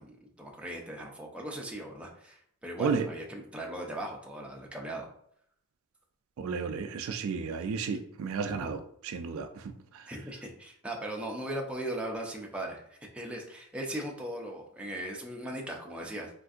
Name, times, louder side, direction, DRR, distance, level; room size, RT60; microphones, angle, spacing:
voice 1, 0.0-5.1 8.5-8.6 10.1-16.3, right 1 dB, 5° right, 0.5 m, -38 dB
voice 2, 6.4-10.0, right 5 dB, 65° right, 0.3 m, -33 dB
3.6 x 2.5 x 2.4 m
head